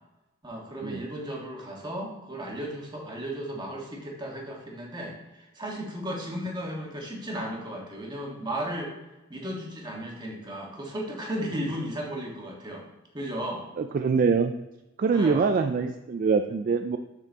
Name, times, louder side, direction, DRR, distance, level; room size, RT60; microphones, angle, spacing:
voice 1, 0.4-8.9 9.3-12.8 13.1-13.6 15.1-15.5, right 1 dB, 25° right, -1 dB, 1.5 m, -35 dB
voice 2, 13.8-14.5 15.0-17.0, right 5 dB, 45° right, 7 dB, 0.3 m, -24 dB
6.6 x 6.0 x 3.5 m, 0.98 s
head